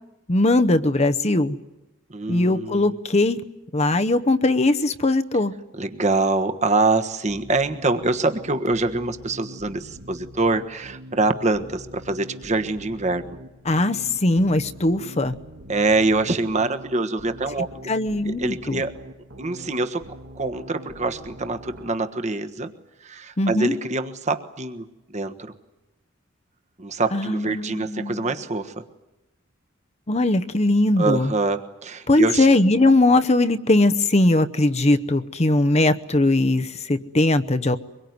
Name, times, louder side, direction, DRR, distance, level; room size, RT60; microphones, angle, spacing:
voice 1, 0.3-1.6 2.3-3.4 3.7-5.5 13.7-15.4 17.9-18.8 23.4-23.7 27.1-28.3 30.1-31.3 32.1-37.8, left 2 dB, 30° left, 10 dB, 0.9 m, -20 dB
voice 2, 2.1-3.0 5.8-13.4 15.7-17.9 18.2-18.9 19.4-20.0 20.3-22.7 23.0-25.5 26.8-28.8 31.0-32.5, right 3 dB, 35° right, 8 dB, 1.4 m, -25 dB
sound 1, 7.3-21.9, equal, 70° right, 1.7 m, -44 dB
24.0 x 22.0 x 9.5 m, 0.99 s
head